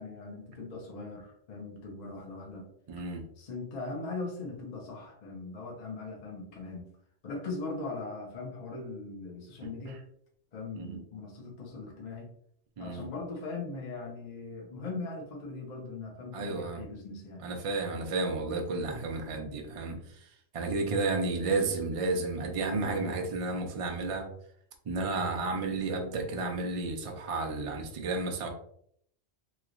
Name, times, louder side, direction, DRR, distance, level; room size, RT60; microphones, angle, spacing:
voice 1, 0.0-2.7 3.4-6.9 7.2-10.0 10.5-12.3 12.8-17.4, left 3 dB, 45° left, 0 dB, 0.7 m, -40 dB
voice 2, 2.9-3.2 10.8-11.0 12.8-13.1 16.3-16.8 17.4-20.0 20.5-24.3 24.9-28.5, right 3 dB, 50° right, 2 dB, 0.4 m, -32 dB
3.1 x 2.9 x 2.5 m, 0.68 s
omnidirectional pair, 1.1 m